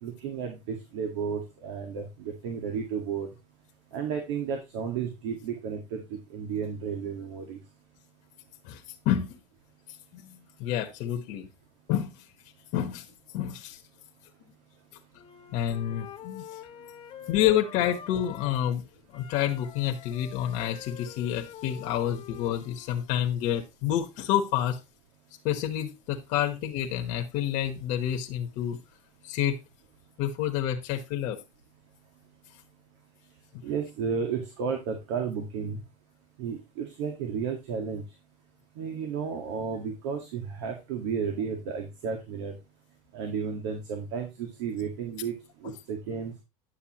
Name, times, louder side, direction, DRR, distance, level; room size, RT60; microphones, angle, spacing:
voice 1, 0.0-3.3 3.9-6.0 6.3-7.6 33.6-35.8 36.4-38.0 38.8-42.5 43.1-45.3 45.6-46.3, right 6 dB, 80° right, 4 dB, 1.8 m, -33 dB
voice 2, 8.6-9.4 10.1-11.5 11.9-12.2 12.7-13.1 13.3-13.8 15.5-16.6 17.3-18.8 19.1-24.8 25.4-28.8 29.2-29.6 30.2-31.4 45.6-45.7, left 11 dB, 60° left, 4 dB, 1.2 m, -29 dB
Wind instrument woodwind instrument, 15.2-18.8 19.1-23.0, left 10 dB, 35° left, 1.1 m, -46 dB
10.0 x 6.7 x 3.0 m, 0.24 s
supercardioid pair, 120°, 15 cm